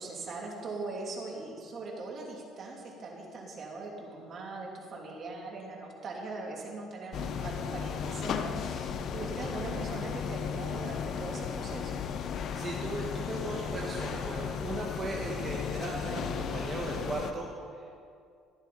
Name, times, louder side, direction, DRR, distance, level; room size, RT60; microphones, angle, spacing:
voice 1, 0.0-12.0, right 3 dB, 45° right, -2 dB, 2.9 m, -40 dB
sound 1, 7.1-17.3, left 7 dB, 55° left, 0.7 m, -35 dB
voice 2, 12.6-17.9, right 2 dB, 25° right, -3 dB, 1.8 m, -37 dB
15.0 x 11.5 x 4.3 m, 2.3 s
cardioid pair, 100°, 0 cm